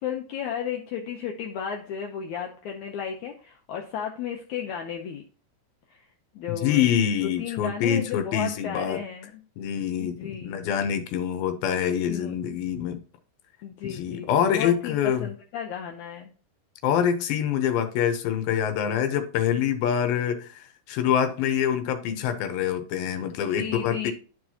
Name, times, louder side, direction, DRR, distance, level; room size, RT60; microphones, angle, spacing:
voice 1, 0.0-5.3 5.9-6.1 6.4-6.9 7.2-9.4 10.0-10.6 12.1-12.3 13.6-16.3 23.6-24.1, left 8 dB, 75° left, 1.9 m, -34 dB
voice 2, 6.5-9.0 9.6-13.0 13.8-15.2 16.8-24.1, left 9 dB, 90° left, 2.7 m, -25 dB
12.0 x 4.6 x 2.8 m
omnidirectional pair, 4.1 m